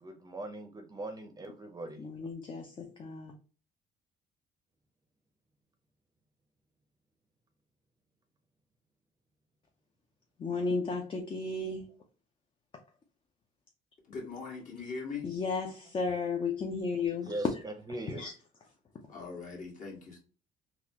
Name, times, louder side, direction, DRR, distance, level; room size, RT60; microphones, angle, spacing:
voice 1, 0.0-2.0 17.2-18.2, right 1 dB, 20° right, 0.6 m, -40 dB
voice 2, 2.0-3.3 10.4-11.9 15.2-17.3 18.1-18.3, left 4 dB, 30° left, 0.6 m, -34 dB
voice 3, 14.0-15.3 19.1-20.2, left 4 dB, 50° left, 1.5 m, -41 dB
3.9 x 2.4 x 2.8 m
cardioid pair, 110°, 17 cm